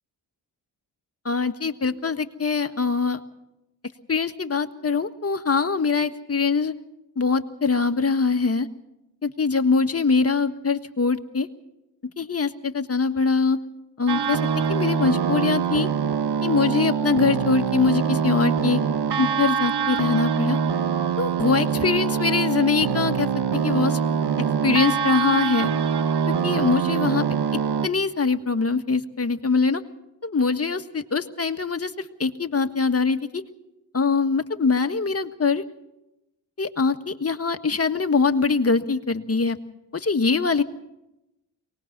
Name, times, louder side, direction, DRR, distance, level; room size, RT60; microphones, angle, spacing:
voice 1, 1.2-3.2 4.1-6.7 7.1-8.7 9.2-11.5 12.2-13.6 14.0-14.4 14.7-15.9 16.4-18.8 19.2-20.6 21.2-24.0 24.6-25.7 26.3-27.2 27.8-29.8 30.2-33.4 33.9-35.6 36.6-39.6 39.9-40.6, left 4 dB, 30° left, 7 dB, 1.6 m, -23 dB
sound 1, 14.1-27.9, right 7 dB, 55° right, 1.3 m, -24 dB
23.5 x 19.5 x 6.1 m, 0.93 s
supercardioid pair, 40°, 47 cm